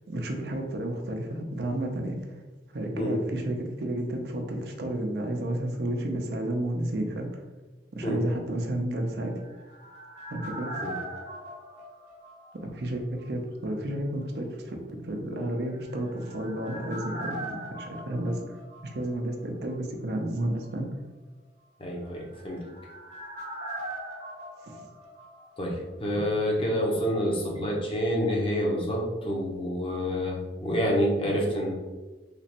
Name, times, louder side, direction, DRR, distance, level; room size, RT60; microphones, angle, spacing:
voice 1, 0.1-2.4 2.7-7.4 7.9-9.4 10.3-10.7 12.7-17.4 17.8-18.4 18.9-20.9 24.6-24.8 26.2-26.3, right 1 dB, 65° right, 2 dB, 0.5 m, -31 dB
sound 1, 9.1-13.0 13.2-13.3 15.7-19.4 19.7-19.8 22.0-25.9 26.2-26.3, right 1 dB, 40° right, 0.9 m, -41 dB
voice 2, 21.8-22.7 25.6-31.7, equal, 30° left, -2 dB, 0.7 m, -28 dB
3.3 x 3.1 x 2.9 m, 1.2 s
head